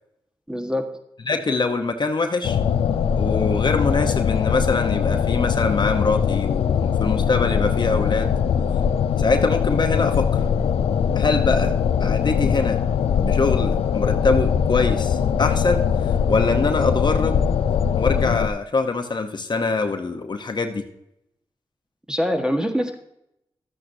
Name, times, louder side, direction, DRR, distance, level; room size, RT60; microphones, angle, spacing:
voice 1, 0.5-0.8 22.1-23.0, equal, 10° right, 4 dB, 1.5 m, -24 dB
voice 2, 1.3-2.6 3.1-8.3 9.2-10.4 11.1-11.7 12.0-12.8 13.2-15.8 16.3-17.4 18.0-20.8, left 3 dB, 50° left, 5 dB, 0.9 m, -23 dB
sound 1, 2.4-18.5, left 7 dB, 80° left, 0.4 m, -21 dB
12.0 x 8.5 x 2.7 m, 0.80 s
cardioid pair, 50°, 10 cm